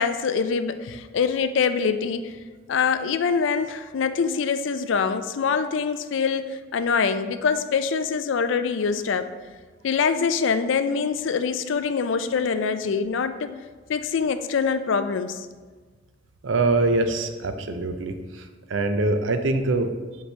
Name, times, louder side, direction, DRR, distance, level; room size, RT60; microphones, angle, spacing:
voice 1, 0.0-2.3 2.7-9.3 9.8-13.5 13.9-15.5, left 5 dB, 80° left, 10 dB, 0.4 m, -24 dB
voice 2, 16.4-18.2 18.7-19.9, right 2 dB, 85° right, 8 dB, 0.5 m, -23 dB
6.1 x 5.4 x 3.3 m, 1.4 s
head